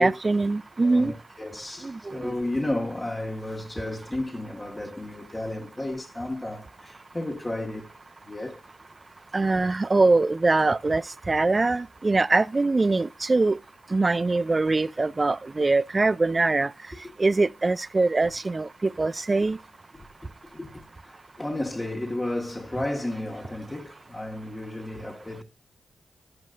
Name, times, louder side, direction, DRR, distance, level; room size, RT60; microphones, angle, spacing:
voice 1, 0.0-1.1 1.8-1.9 2.2-2.3 9.3-11.0 11.3-13.6 13.9-16.7 17.2-19.6, right 3 dB, 35° right, 0.4 m, -23 dB
voice 2, 0.8-7.9 8.2-8.6 9.5-9.6 18.2-18.3 19.9-20.1 20.5-25.4, left 1 dB, 25° left, 1.6 m, -33 dB
11.5 x 5.3 x 2.5 m
supercardioid pair, 45°, 0 cm